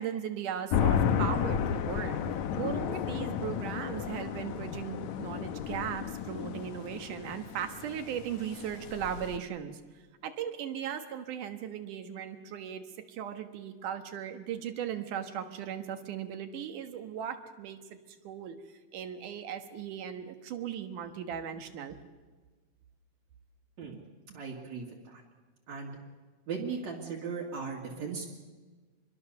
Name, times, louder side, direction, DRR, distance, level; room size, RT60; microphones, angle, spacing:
voice 1, 0.0-9.8 10.2-17.8 18.2-18.6 18.9-22.0, right 9 dB, 90° right, 7 dB, 3.0 m, -37 dB
sound 1, 0.7-9.4, left 8 dB, 75° left, 2.2 m, -32 dB
voice 2, 23.8-25.2 25.7-26.0 26.5-28.3, right 5 dB, 65° right, -2 dB, 3.4 m, -38 dB
26.0 x 22.0 x 6.9 m, 1.3 s
omnidirectional pair, 3.5 m